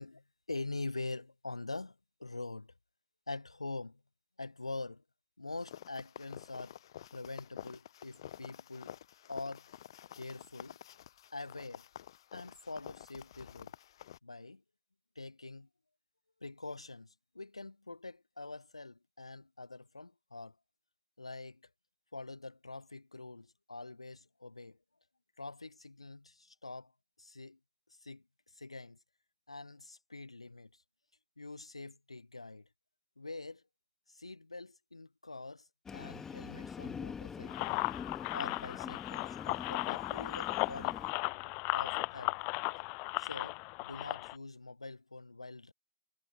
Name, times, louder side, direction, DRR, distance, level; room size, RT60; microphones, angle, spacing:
voice 1, 0.0-2.7 3.3-4.0 4.4-5.0 5.4-6.8 7.1-9.0 9.3-9.7 10.1-10.8 11.3-11.9 12.3-13.7 14.2-14.6 15.1-15.7 16.4-20.5 21.2-21.7 22.1-24.8 25.4-26.9 27.2-27.6 28.0-28.2 28.5-29.0 29.5-30.7 31.4-32.7 33.2-33.6 34.1-37.9 38.3-41.0 41.7-42.4 43.2-45.7, left 3 dB, 80° left, 1.1 m, -44 dB
sound 1, 5.6-14.2, left 11 dB, 55° left, 0.8 m, -50 dB
Train, 35.9-41.1, left 6 dB, 15° left, 1.8 m, -44 dB
sound 2, 37.5-44.4, left 35 dB, 35° left, 0.4 m, -36 dB
figure-of-eight pair, 105°, 3 cm